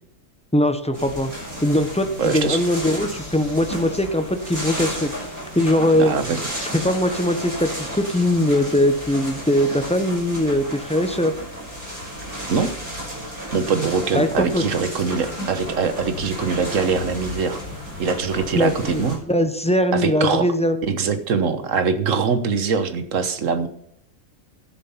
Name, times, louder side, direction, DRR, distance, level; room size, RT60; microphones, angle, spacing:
voice 1, 0.5-1.3 1.6-5.1 5.5-6.1 6.7-11.3 14.1-14.6 18.5-20.9, left 1 dB, 5° left, 8 dB, 0.8 m, -21 dB
sound 1, 0.9-19.2, equal, 40° right, 6.3 m, -33 dB
voice 2, 2.2-2.6 6.0-6.4 12.5-12.7 13.5-17.6 18.0-19.2 19.9-20.5 20.9-23.7, right 5 dB, 70° right, 10 dB, 1.5 m, -23 dB
12.0 x 7.4 x 5.6 m, 0.70 s
omnidirectional pair, 1.4 m